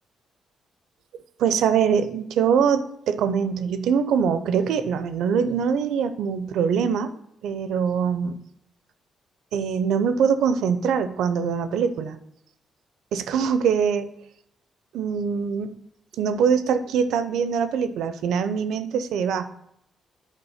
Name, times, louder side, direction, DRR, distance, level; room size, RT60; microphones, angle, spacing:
voice 1, 1.4-7.1 7.4-8.4 9.5-12.2 13.1-14.1 14.9-15.7 16.2-19.5, right 7 dB, 80° right, 11 dB, 0.6 m, -23 dB
8.2 x 3.9 x 5.6 m, 0.76 s
supercardioid pair, 65°, 0 cm